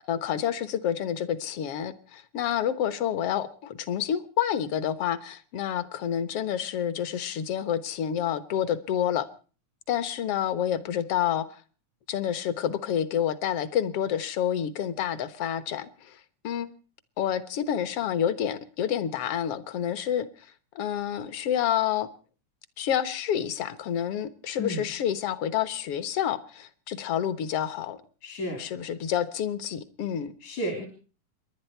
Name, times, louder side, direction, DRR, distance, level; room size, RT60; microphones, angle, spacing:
voice 1, 0.1-9.3 9.9-11.5 12.1-16.7 17.2-20.3 20.8-22.1 22.8-28.0 28.6-30.3, left 10 dB, 60° left, 1.9 m, -28 dB
voice 2, 24.6-24.9 28.2-28.6 30.4-30.9, equal, 75° left, 4.9 m, -32 dB
29.0 x 11.5 x 4.5 m
omnidirectional pair, 3.5 m